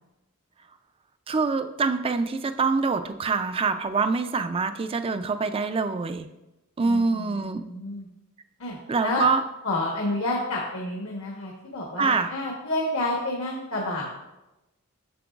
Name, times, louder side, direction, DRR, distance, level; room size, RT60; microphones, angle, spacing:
voice 1, 1.3-6.3 6.8-7.6 8.9-9.4 12.0-12.3, right 4 dB, 25° right, 10 dB, 0.3 m, -25 dB
voice 2, 6.8-8.1 8.6-8.8 9.0-9.3 9.6-14.1, left 2 dB, 70° left, -3 dB, 1.1 m, -29 dB
7.6 x 6.8 x 2.4 m, 0.97 s
head